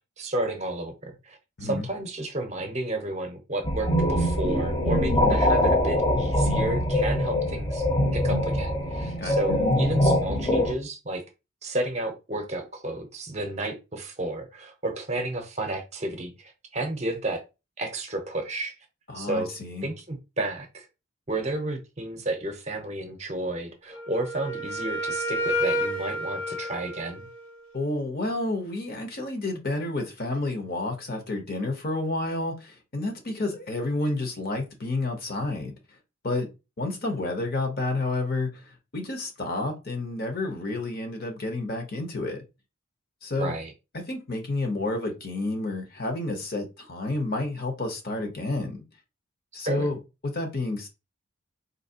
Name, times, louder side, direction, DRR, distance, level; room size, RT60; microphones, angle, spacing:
voice 1, 0.2-7.9 8.1-11.2 11.6-17.4 17.8-18.7 19.1-19.5 19.8-20.9 21.3-27.3 43.4-43.7 49.6-49.9, right 2 dB, 30° right, 0.7 m, -32 dB
sound 1, 3.6-10.7, left 1 dB, 20° left, 0.7 m, -23 dB
voice 2, 19.1-19.9 27.7-35.7 36.2-36.5 36.8-42.4 43.2-43.5 43.9-48.8 49.5-50.0 50.2-50.9, left 2 dB, 45° left, 0.9 m, -30 dB
Wind instrument woodwind instrument, 23.9-27.8, equal, 85° left, 1.1 m, -30 dB
4.0 x 2.8 x 2.8 m
head